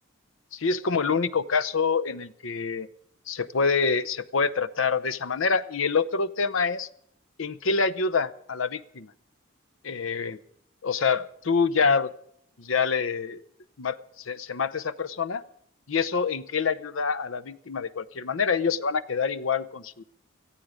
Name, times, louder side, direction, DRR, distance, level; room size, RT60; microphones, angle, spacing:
voice 1, 0.5-2.9 3.3-6.9 7.4-9.1 9.8-10.4 10.8-12.1 12.6-13.4 13.8-15.4 15.9-20.0, left 5 dB, 75° left, 13 dB, 0.7 m, -26 dB
18.5 x 13.5 x 5.0 m, 0.70 s
head